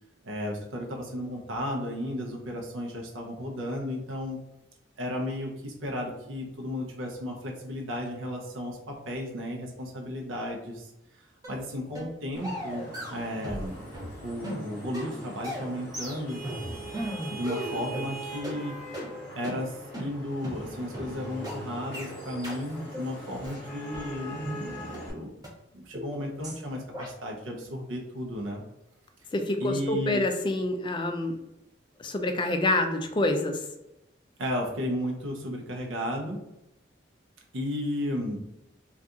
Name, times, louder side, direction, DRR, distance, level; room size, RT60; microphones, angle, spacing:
voice 1, 0.2-4.4 5.0-11.2 11.5-13.9 14.2-16.4 17.3-18.8 19.3-25.3 25.7-28.6 29.6-30.2 34.4-36.4 37.5-38.4, left 1 dB, 85° right, 0 dB, 0.6 m, -34 dB
sound 1, 11.4-11.6 11.9-12.1 12.4-13.7 13.9-18.1 18.4-18.6 18.9-19.1 19.4-19.6 19.9-20.1 20.4-20.6 20.9-21.1 21.4-21.6 21.9-22.1 22.4-22.6 22.9-23.1 23.4-24.6 24.9-25.0 25.4-25.5 25.9-26.1 26.4-26.6 26.9-27.1, equal, 20° right, 0.7 m, -37 dB
Vehicle horn car horn honking / Traffic noise roadway noise, 12.3-25.1, right 1 dB, 5° left, 1.3 m, -42 dB
voice 2, 29.3-31.4 32.0-33.6, left 1 dB, 25° left, 5 dB, 0.3 m, -27 dB
2.7 x 2.3 x 3.5 m, 0.90 s
head